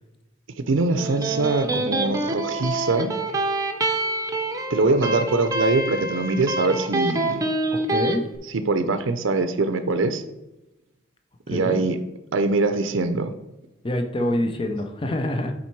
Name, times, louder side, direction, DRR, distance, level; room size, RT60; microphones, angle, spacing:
voice 1, 0.6-3.1 4.7-7.4 8.5-10.2 11.5-12.0 12.3-13.3, right 3 dB, 80° right, 9 dB, 0.6 m, -23 dB
Electric guitar, 0.8-8.2, right 2 dB, 20° right, 0.7 m, -26 dB
voice 2, 7.7-8.2 11.5-11.8 13.8-15.5, left 1 dB, 25° left, 4 dB, 0.5 m, -26 dB
7.3 x 4.3 x 4.6 m, 0.97 s
head